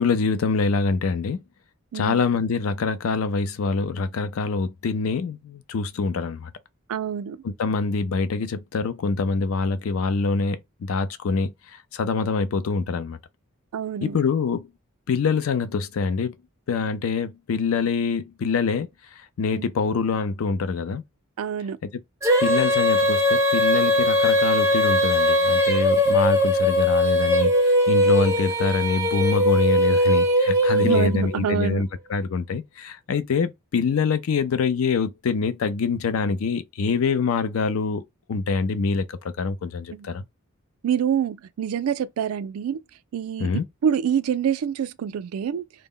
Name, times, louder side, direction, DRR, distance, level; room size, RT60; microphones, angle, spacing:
voice 1, 0.0-1.4 1.9-6.5 7.6-11.5 11.9-13.2 14.0-14.7 15.1-16.3 16.7-18.9 19.4-21.0 22.4-38.0 38.3-40.2 43.4-43.6, left 4 dB, 70° left, 0.4 m, -25 dB
voice 2, 1.9-2.2 6.9-7.4 13.7-14.2 19.5-19.7 21.4-21.8 30.7-31.8 39.9-40.1 40.8-42.8 43.1-45.6, right 8 dB, 80° right, 0.3 m, -26 dB
Female singing, 22.2-31.4, left 1 dB, 15° right, 0.5 m, -20 dB
2.1 x 2.0 x 3.6 m
head